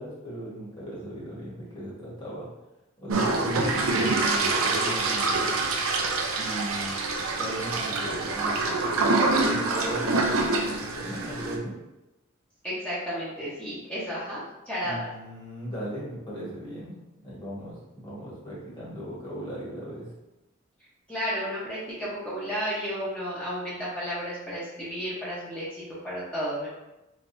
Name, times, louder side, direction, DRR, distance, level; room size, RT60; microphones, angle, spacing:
voice 1, 0.0-2.5 3.0-5.6 6.4-6.9 7.4-8.9 9.4-11.7 14.8-17.0 17.2-20.1, right 1 dB, 20° left, -7 dB, 1.3 m, -37 dB
sound 1, 3.1-11.6, right 3 dB, 80° right, 0.5 m, -26 dB
voice 2, 12.6-15.1 21.1-26.7, equal, 5° left, -10 dB, 0.9 m, -32 dB
3.5 x 3.3 x 2.6 m, 0.96 s
head